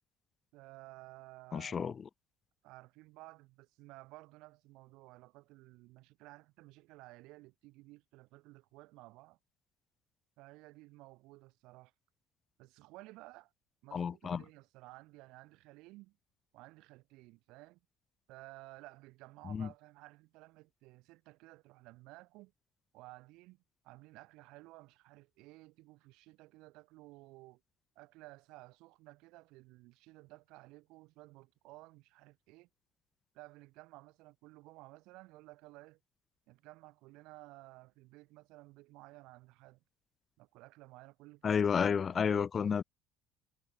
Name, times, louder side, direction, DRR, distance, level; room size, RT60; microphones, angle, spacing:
voice 1, 0.5-1.9 2.6-9.4 10.4-11.9 12.6-13.5 13.8-16.2 16.5-17.8 18.3-22.5 22.9-27.6 28.0-32.7 33.3-36.0 36.5-39.8 40.4-42.4, right 21 dB, 80° right, 2.0 m, -55 dB
voice 2, 1.5-1.9 13.9-14.4 19.5-19.7 41.4-42.8, left 6 dB, 40° left, 0.4 m, -31 dB
supercardioid pair, 95°, 0 cm